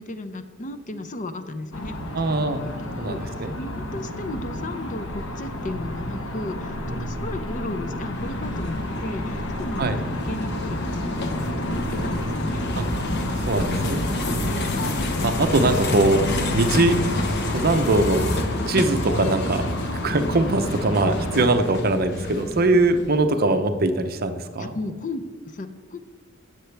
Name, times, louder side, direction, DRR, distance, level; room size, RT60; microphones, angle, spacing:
voice 1, 0.0-2.4 2.6-12.6 15.4-15.5 16.4-16.6 24.6-26.0, left 2 dB, 40° left, 9 dB, 0.6 m, -35 dB
sound 1, 1.7-21.5, left 1 dB, 80° left, 1.1 m, -32 dB
voice 2, 2.1-2.6 3.0-3.5 6.8-7.1 9.8-10.0 12.8-12.9 13.5-14.0 14.3-14.8 15.2-16.2 16.5-17.0 17.5-18.3 18.7-19.6 20.0-24.7, right 2 dB, 50° right, 8 dB, 0.7 m, -22 dB
sound 2, 5.1-15.9, equal, 10° right, 1.6 m, -39 dB
sound 3, 8.1-23.2, left 1 dB, 55° left, 1.0 m, -29 dB
16.0 x 6.8 x 3.4 m, 1.4 s
head